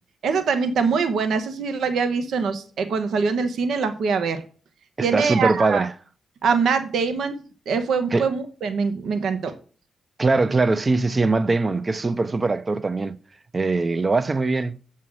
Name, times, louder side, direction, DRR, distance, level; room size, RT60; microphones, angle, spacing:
voice 1, 0.2-4.4 5.0-5.9 6.4-9.5, right 5 dB, 75° right, 0.9 m, -23 dB
voice 2, 5.0-5.9 8.1-8.3 10.2-13.2 13.5-14.8, right 3 dB, 30° right, 0.5 m, -21 dB
7.6 x 5.6 x 6.2 m
cardioid pair, 100°, 0 cm